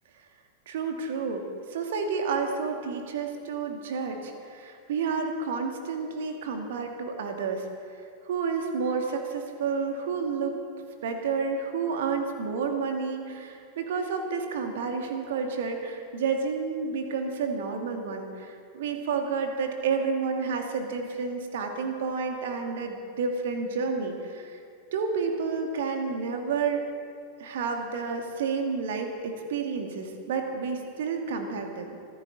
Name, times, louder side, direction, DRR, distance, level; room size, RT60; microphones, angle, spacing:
voice 1, 0.7-1.4 1.7-7.7 8.2-10.6 11.0-24.6 24.9-26.8 27.4-31.9, right 5 dB, 55° right, 4 dB, 2.1 m, -30 dB
25.5 x 14.0 x 4.0 m, 2.3 s
figure-of-eight pair, 90°, 0 cm